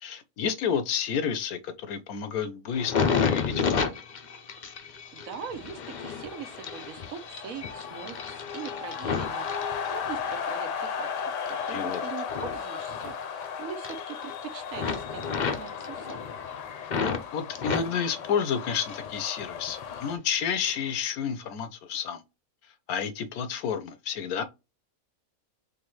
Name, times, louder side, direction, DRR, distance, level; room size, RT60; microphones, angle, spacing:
voice 1, 0.0-2.9 3.2-3.8 11.7-12.3 17.0-22.2 22.9-24.4, left 7 dB, 80° left, 1.2 m, -30 dB
sound 1, 2.7-10.4 10.9-13.5 13.7-14.4 14.7-17.2 17.6-19.1 19.4-20.1 20.7-20.9, left 6 dB, 50° left, 0.5 m, -32 dB
voice 2, 5.1-11.1 11.7-16.3, right 7 dB, 70° right, 1.3 m, -42 dB
sound 2, 5.4-20.2, left 6 dB, 65° left, 1.0 m, -36 dB
3.9 x 3.4 x 3.1 m
omnidirectional pair, 1.5 m